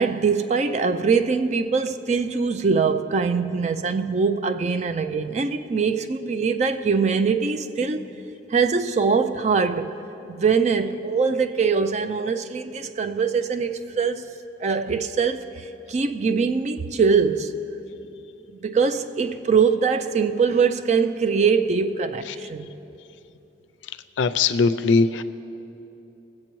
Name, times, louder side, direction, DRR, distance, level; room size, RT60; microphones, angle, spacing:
voice 1, 0.0-8.1 8.5-9.9 10.3-14.3 14.6-17.5 18.6-22.7, right 5 dB, 40° right, 0.3 m, -22 dB
voice 2, 24.2-25.2, left 4 dB, 85° left, 0.4 m, -20 dB
19.0 x 7.5 x 3.1 m
head